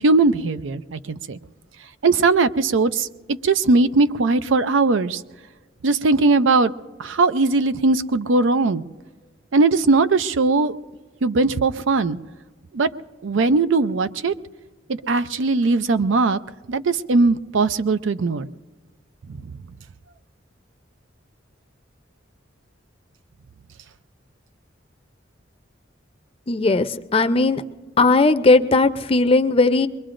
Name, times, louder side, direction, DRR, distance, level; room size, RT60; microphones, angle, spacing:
voice 1, 0.0-1.4 2.0-5.2 5.8-6.7 7.0-8.8 9.5-10.7 11.2-12.2 12.7-12.9 13.2-14.3 14.9-16.4 16.7-18.5 19.3-19.4, right 3 dB, 80° right, 13 dB, 0.5 m, -19 dB
voice 2, 26.5-27.6 28.0-29.9, left 3 dB, 30° left, 10 dB, 0.6 m, -17 dB
23.0 x 22.0 x 2.6 m, 1.3 s
head